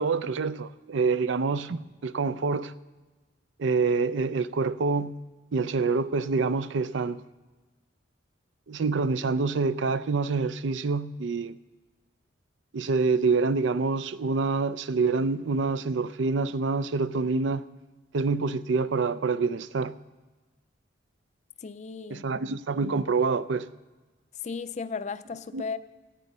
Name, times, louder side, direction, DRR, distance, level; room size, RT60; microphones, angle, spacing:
voice 1, 0.0-2.7 3.6-5.2 5.5-7.2 8.7-11.6 12.7-17.6 18.1-19.9 22.1-23.7 25.5-25.6, right 4 dB, 70° right, 0.5 m, -26 dB
voice 2, 21.6-22.3 24.3-25.8, left 5 dB, 35° left, 0.4 m, -35 dB
16.5 x 9.2 x 5.4 m
head